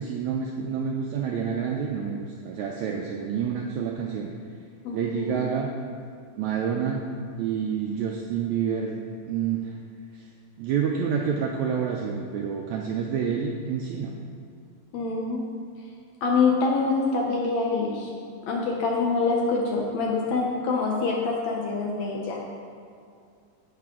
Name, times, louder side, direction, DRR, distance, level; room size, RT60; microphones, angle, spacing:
voice 1, 0.0-4.3 4.9-5.7 6.4-7.0 7.4-9.0 9.3-9.6 10.6-14.1, right 7 dB, 85° right, 0 dB, 1.6 m, -28 dB
voice 2, 4.8-5.4 14.9-15.4 16.2-18.1 18.4-22.4, left 4 dB, 70° left, -1 dB, 1.8 m, -25 dB
10.5 x 8.4 x 3.7 m, 2.4 s
omnidirectional pair, 4.0 m